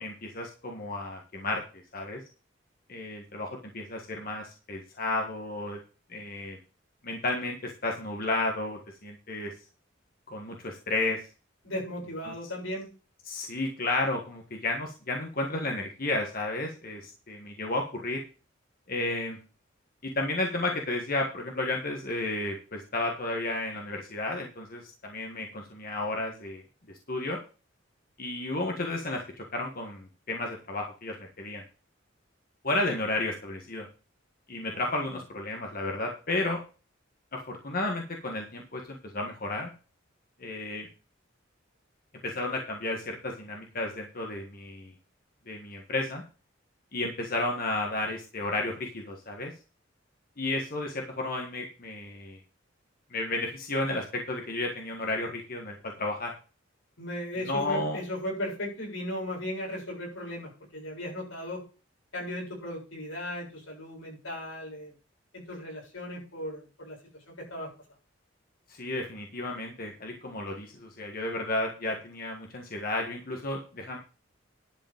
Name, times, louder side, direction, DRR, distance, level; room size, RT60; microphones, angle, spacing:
voice 1, 0.0-2.2 2.9-5.8 6.1-6.6 7.0-9.5 10.3-11.3 12.2-12.3 13.2-18.2 18.9-19.4 20.0-26.6 27.1-27.4 28.2-31.6 32.6-33.9 34.5-36.6 37.3-39.7 40.4-40.9 42.2-44.9 45.5-46.2 46.9-49.5 50.4-52.4 53.1-56.3 57.4-58.0 68.7-74.0, left 2 dB, 45° left, 1 dB, 1.6 m, -32 dB
voice 2, 11.6-12.9 34.7-34.8 57.0-61.6 62.1-64.9 65.3-67.0 67.3-67.7, left 1 dB, 85° left, -2 dB, 7.2 m, -36 dB
11.0 x 5.2 x 7.2 m, 0.35 s
head